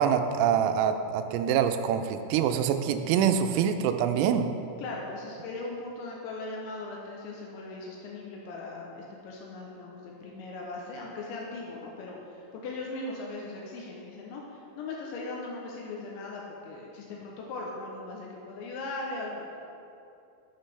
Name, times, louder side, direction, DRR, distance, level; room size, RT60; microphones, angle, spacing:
voice 1, 0.0-4.5, right 8 dB, 85° right, 8 dB, 3.2 m, -25 dB
voice 2, 4.8-19.6, left 2 dB, 80° left, -2 dB, 2.8 m, -39 dB
9.9 x 7.9 x 3.3 m, 2.7 s
omnidirectional pair, 5.9 m